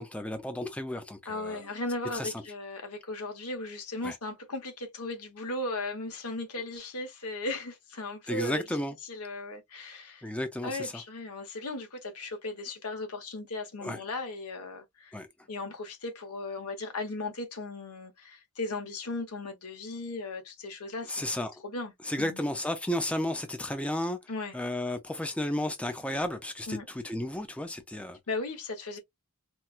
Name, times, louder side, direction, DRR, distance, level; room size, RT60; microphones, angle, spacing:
voice 1, 0.0-1.6 2.1-2.3 4.0-4.2 8.3-8.9 10.2-10.9 13.8-14.0 15.1-15.3 21.1-21.5 22.0-24.2 24.5-28.2, left 1 dB, 5° left, 0.4 m, -33 dB
voice 2, 1.2-8.6 9.0-10.3 10.6-15.2 15.5-21.2 21.6-21.9 22.2-22.4 24.3-24.5 26.7-26.8 28.3-29.0, left 2 dB, 80° left, 1.1 m, -37 dB
4.3 x 2.2 x 2.3 m
head